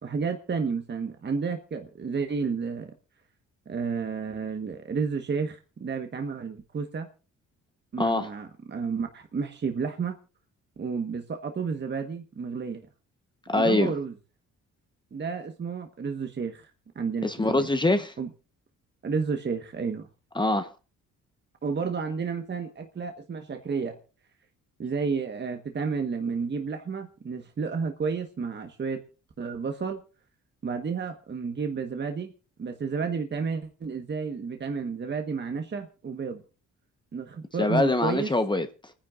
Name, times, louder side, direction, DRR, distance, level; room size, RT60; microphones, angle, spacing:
voice 1, 0.0-2.9 3.7-7.1 7.9-10.2 10.8-12.8 13.5-14.1 15.1-16.7 16.9-17.7 18.2-18.3 19.0-20.1 21.6-24.0 24.8-29.0 29.4-30.0 30.6-32.3 32.6-36.4 37.1-38.3, right 5 dB, 35° right, 1.4 m, -31 dB
voice 2, 8.0-8.3 13.5-13.9 17.2-18.1 20.3-20.7 37.6-38.9, left 2 dB, 15° left, 1.1 m, -24 dB
29.0 x 10.0 x 2.5 m
cardioid pair, 90°, 30 cm